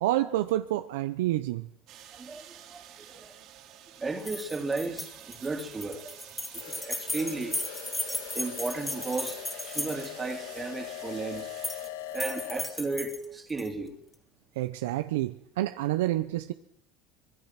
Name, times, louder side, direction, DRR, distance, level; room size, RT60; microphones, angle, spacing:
voice 1, 0.0-1.7 14.6-16.5, right 15 dB, 90° right, 0.8 m, -28 dB
sound 1, 1.9-11.9, right 11 dB, 60° right, 3.5 m, -50 dB
voice 2, 2.1-3.3 4.0-6.2 6.5-11.5 12.1-13.9, right 3 dB, 20° right, 2.9 m, -35 dB
sound 2, 4.2-10.3 11.4-11.9 12.1-13.7, left 1 dB, 10° left, 3.1 m, -36 dB
sound 3, 6.6-12.8, left 11 dB, 85° left, 1.7 m, -41 dB
24.5 x 21.0 x 6.0 m
supercardioid pair, 100°, 0 cm